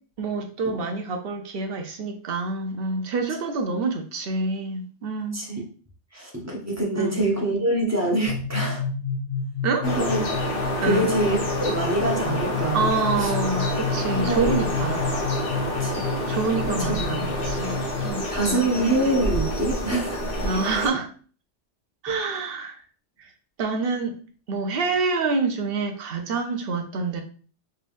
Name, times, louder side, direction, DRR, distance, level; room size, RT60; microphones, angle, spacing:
voice 1, 0.2-5.4 7.0-7.1 7.4-7.5 9.6-9.9 10.8-11.1 12.7-15.1 16.3-18.7 20.4-21.1 22.0-22.8 23.2-23.3 23.6-24.2 24.5-27.2, right 4 dB, 60° right, 5 dB, 0.7 m, -27 dB
voice 2, 6.1-8.8 9.8-10.2 10.5-12.9 13.2-13.3 14.2-14.6 15.6-16.0 16.3-16.4 16.7-16.8 18.3-20.3, right 1 dB, 15° right, -3 dB, 0.9 m, -25 dB
sound 1, 8.3-18.1, left 4 dB, 80° left, 1.6 m, -30 dB
sound 2, 9.8-20.9, left 1 dB, 50° left, 1.0 m, -28 dB
3.4 x 3.2 x 2.5 m, 0.41 s
omnidirectional pair, 1.3 m